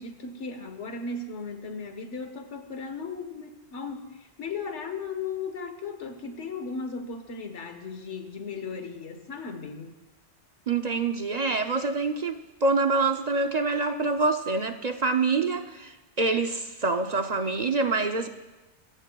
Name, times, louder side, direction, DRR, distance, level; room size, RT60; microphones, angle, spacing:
voice 1, 0.0-10.0, left 4 dB, 90° left, 7 dB, 1.5 m, -36 dB
voice 2, 10.7-18.3, right 3 dB, 45° right, 6 dB, 0.6 m, -26 dB
24.5 x 14.5 x 2.3 m, 1.1 s
omnidirectional pair, 1.2 m